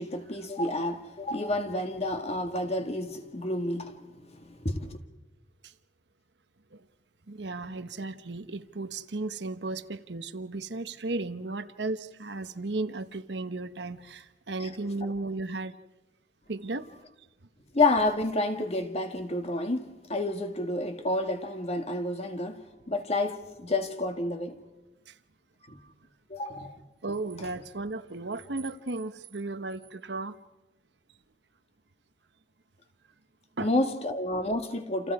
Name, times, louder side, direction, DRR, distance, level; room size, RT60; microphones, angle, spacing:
voice 1, 0.0-5.0 14.6-14.7 15.0-15.1 17.7-24.6 25.7-25.8 26.3-26.8 33.6-35.1, left 2 dB, 35° left, 1.9 m, -30 dB
voice 2, 7.3-15.8 16.5-17.3 25.1-25.2 25.6-25.9 27.0-30.4 33.6-33.7, right 2 dB, 75° right, 1.1 m, -35 dB
28.5 x 28.5 x 4.9 m
head